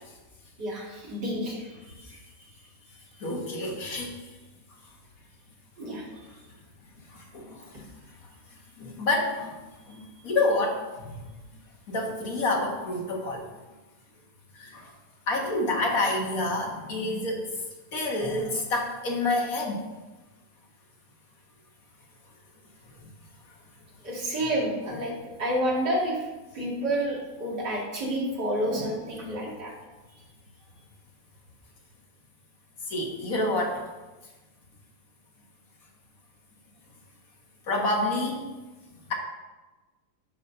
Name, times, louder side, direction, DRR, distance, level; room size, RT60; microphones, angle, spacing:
voice 1, 0.6-2.0 5.8-6.2 9.9-10.3 24.0-25.1 25.4-26.3 26.5-29.7, right 1 dB, 85° right, -4 dB, 2.8 m, -30 dB
voice 2, 3.2-4.1 7.1-7.8 8.8-9.6 9.9-11.2 11.9-13.5 14.6-14.9 15.3-17.5 17.9-19.8 28.7-28.9 32.9-33.8 37.7-38.4, left 2 dB, 55° left, 0 dB, 1.9 m, -28 dB
12.0 x 4.2 x 5.6 m, 1.2 s
omnidirectional pair, 1.8 m